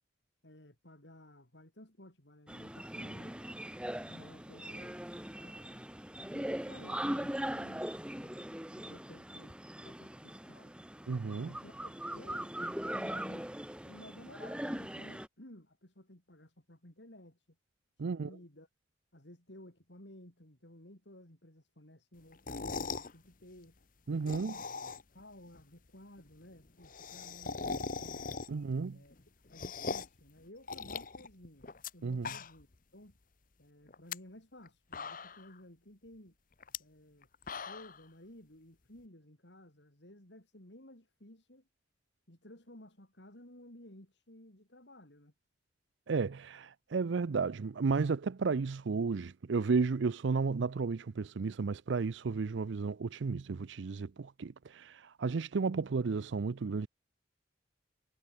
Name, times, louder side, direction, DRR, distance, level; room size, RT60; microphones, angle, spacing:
voice 1, 0.4-3.4 3.9-5.9 6.2-9.6 9.8-10.7 11.4-13.5 13.8-17.5 18.0-18.7 19.1-23.8 24.3-24.7 25.1-28.4 28.9-29.1 29.5-31.7 31.9-32.7 32.9-33.1 33.6-36.4 36.8-41.7 42.3-45.3, left 1 dB, 65° left, 4.7 m, -55 dB
sound 1, 2.5-15.3, right 1 dB, 5° right, 1.7 m, -40 dB
voice 2, 11.1-11.5 18.0-18.3 24.1-24.6 28.5-29.0 32.0-32.3 46.1-56.9, right 4 dB, 70° right, 0.5 m, -33 dB
sound 2, 22.3-23.1 24.1-25.2 25.5-25.6 25.9-26.0 26.2-26.3 26.5-28.7 29.1-30.2 30.7-31.9 32.2-32.8 33.1-33.2 33.9-34.2 34.6-34.7 34.9-35.5 36.6-36.8 37.2-38.0, left 4 dB, 45° left, 1.1 m, -40 dB
head